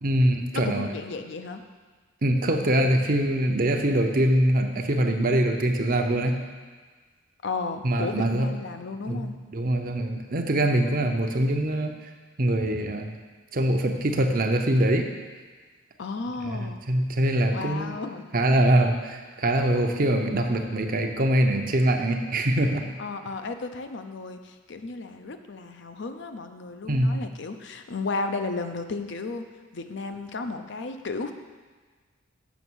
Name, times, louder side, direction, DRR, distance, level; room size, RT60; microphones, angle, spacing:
voice 1, 0.0-0.9 2.2-6.4 7.8-8.5 9.1-11.9 12.4-13.1 13.5-15.1 16.4-18.0 18.3-22.9 26.9-27.2, right 1 dB, 45° right, 4 dB, 0.7 m, -23 dB
voice 2, 0.5-1.7 7.4-9.4 11.2-11.5 16.0-16.8 17.5-18.3 23.0-29.4 29.7-31.3, left 3 dB, 60° left, 7 dB, 0.6 m, -34 dB
7.1 x 5.9 x 6.2 m, 1.4 s
head